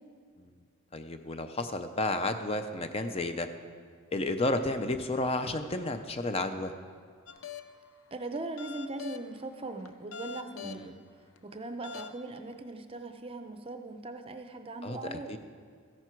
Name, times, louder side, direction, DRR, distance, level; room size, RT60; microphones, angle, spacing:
voice 1, 0.9-3.5 4.1-6.7 10.6-10.9 14.8-15.4, left 2 dB, 25° left, 8 dB, 0.5 m, -32 dB
sound 1, 7.3-7.9 8.4-9.4 9.9-10.8 11.4-11.5 11.8-12.4, left 7 dB, 65° left, 0.6 m, -43 dB
voice 2, 8.1-11.0 11.4-15.4, right 2 dB, 25° right, 7 dB, 0.6 m, -40 dB
14.5 x 10.5 x 4.5 m, 2.1 s
head